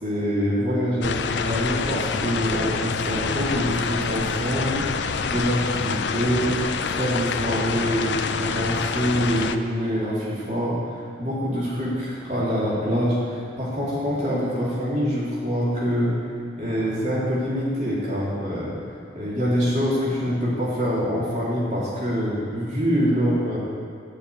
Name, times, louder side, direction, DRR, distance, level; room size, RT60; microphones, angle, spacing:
voice 1, 0.0-4.9 5.3-6.6 6.9-16.1 16.6-18.7 19.1-23.6, equal, 40° right, -8 dB, 2.8 m, -25 dB
sound 1, 1.0-9.6, left 5 dB, 65° left, 0.5 m, -27 dB
13.0 x 5.1 x 8.7 m, 2.3 s
head